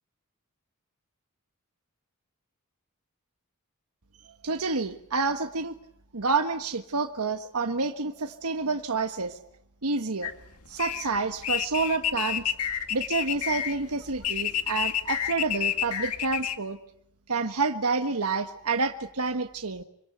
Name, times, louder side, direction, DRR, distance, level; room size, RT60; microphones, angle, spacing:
voice 1, 4.2-5.7 6.1-9.4 9.8-10.3 10.7-12.6 12.9-16.8 17.3-19.8, right 4 dB, 80° right, 6 dB, 1.4 m, -28 dB
sound 1, 10.2-16.6, left 10 dB, 90° left, 2.0 m, -30 dB
26.0 x 25.5 x 8.0 m, 0.71 s
head